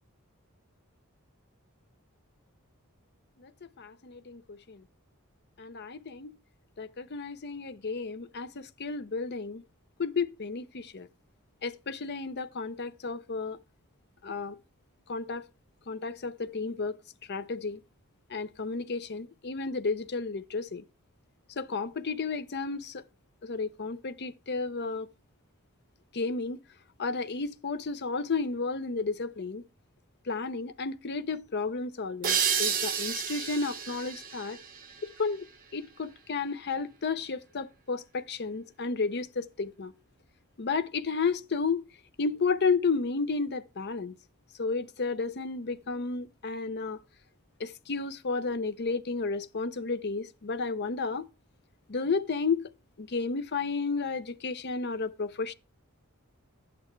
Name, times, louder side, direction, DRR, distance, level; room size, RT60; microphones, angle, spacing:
voice 1, 3.8-4.8 5.6-6.3 6.8-9.6 10.0-11.1 11.6-13.6 14.2-14.6 15.1-15.4 15.9-17.0 17.3-17.8 18.3-20.8 21.6-23.0 23.4-25.1 26.1-26.6 27.0-29.6 30.3-34.6 35.2-35.4 35.7-39.9 40.6-41.8 42.2-44.1 44.6-47.0 47.6-51.3 51.9-52.7 53.0-55.5, left 4 dB, 50° left, 0.6 m, -32 dB
sound 1, 32.2-35.6, right 7 dB, 40° right, 1.3 m, -31 dB
11.5 x 8.5 x 3.2 m
head